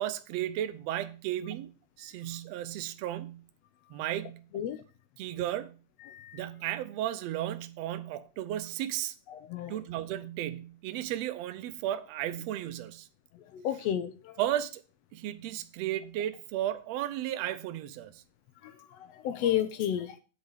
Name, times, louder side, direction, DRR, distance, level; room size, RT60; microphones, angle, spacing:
voice 1, 0.0-1.7 2.0-3.4 3.9-4.5 5.2-5.8 6.3-9.1 9.7-13.1 14.4-14.8 15.1-18.2, right 12 dB, 70° right, 1.7 m, -34 dB
voice 2, 6.0-6.4 9.3-9.8 13.5-14.4 18.6-20.2, left 10 dB, 75° left, 1.6 m, -32 dB
8.4 x 5.2 x 7.1 m
omnidirectional pair, 3.4 m